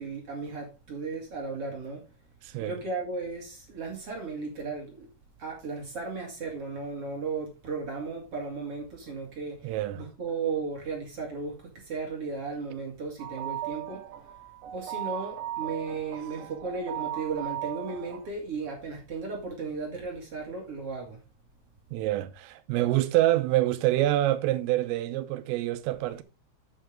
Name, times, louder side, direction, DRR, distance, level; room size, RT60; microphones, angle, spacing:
voice 1, 0.0-2.0 2.6-5.1 5.4-14.0 14.7-21.2, right 4 dB, 40° right, 2.3 m, -35 dB
voice 2, 2.4-2.8 9.6-10.0 21.9-26.2, right 15 dB, 85° right, 3.4 m, -26 dB
sound 1, 13.2-18.3, right 13 dB, 70° right, 3.1 m, -37 dB
9.2 x 8.6 x 3.6 m
omnidirectional pair, 5.9 m